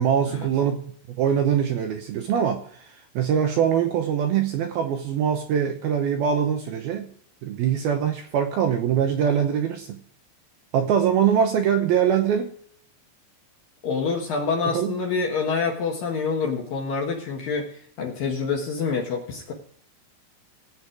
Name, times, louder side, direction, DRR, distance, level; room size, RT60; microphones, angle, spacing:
voice 1, 0.0-7.1 7.4-10.0 10.7-12.5 14.7-14.9, right 8 dB, 75° right, 5 dB, 2.3 m, -23 dB
voice 2, 13.8-19.5, left 5 dB, 60° left, 0 dB, 2.7 m, -27 dB
17.5 x 8.6 x 4.8 m, 0.64 s
omnidirectional pair, 5.4 m